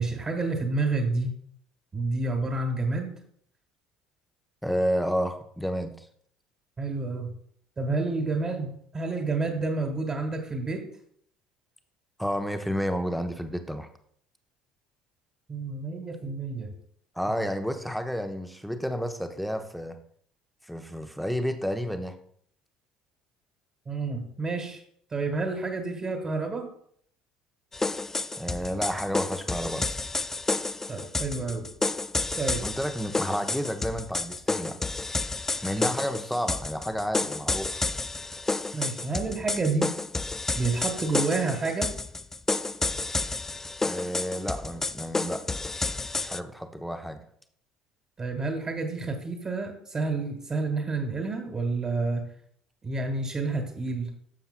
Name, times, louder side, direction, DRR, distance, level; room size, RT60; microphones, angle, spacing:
voice 1, 0.0-1.4 1.9-3.1 6.8-7.3 7.8-10.8 15.5-16.7 23.9-24.8 25.1-26.7 30.9-31.7 32.4-32.6 38.7-39.9 40.5-41.9 48.2-52.3 52.8-54.1, right 3 dB, 30° right, 2 dB, 1.7 m, -29 dB
voice 2, 4.6-6.1 12.2-13.9 17.2-20.0 20.7-22.1 28.4-30.0 32.6-34.7 35.6-37.8 43.8-45.4 46.2-47.2, equal, ahead, 6 dB, 0.9 m, -31 dB
sound 1, 27.7-46.4, left 3 dB, 15° left, 0.3 m, -30 dB
11.5 x 6.9 x 2.2 m, 0.65 s
hypercardioid pair, 60°, 3 cm